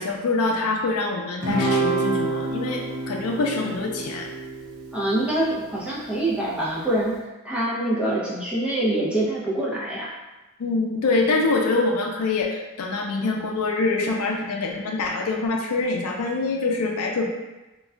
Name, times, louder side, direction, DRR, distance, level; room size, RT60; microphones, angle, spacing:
voice 1, 0.0-4.3 10.6-17.3, left 3 dB, 85° left, 1 dB, 0.4 m, -25 dB
Guitar, 1.4-6.0, right 3 dB, 70° right, 0.5 m, -28 dB
voice 2, 4.9-7.1 7.4-10.1, right 1 dB, 5° right, -7 dB, 0.4 m, -25 dB
2.3 x 2.2 x 3.5 m, 1.1 s
head